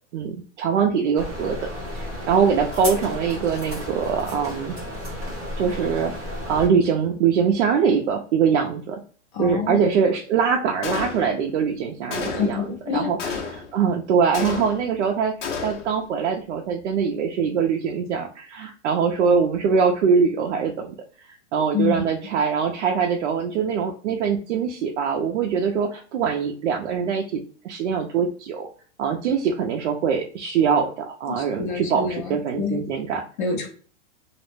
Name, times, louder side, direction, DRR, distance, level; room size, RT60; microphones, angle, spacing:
voice 1, 0.1-1.6 1.9-4.8 5.6-9.0 9.4-12.6 12.9-15.3 15.6-20.9 21.5-27.2 27.6-28.7 29.0-33.2, right 6 dB, 70° right, 2 dB, 0.5 m, -23 dB
sound 1, 1.2-6.7, equal, 5° right, 0.4 m, -33 dB
voice 2, 9.3-9.8 12.3-13.1 21.7-22.0 31.3-32.8 33.4-33.7, left 5 dB, 45° left, 1 dB, 0.8 m, -27 dB
Gunshot gunfire, 10.8-11.5 12.1-12.7 13.2-13.8 14.3-15.0 15.4-16.0, left 5 dB, 75° left, 0.9 m, -31 dB
2.4 x 2.1 x 3.1 m, 0.43 s
supercardioid pair, 175°, 36 cm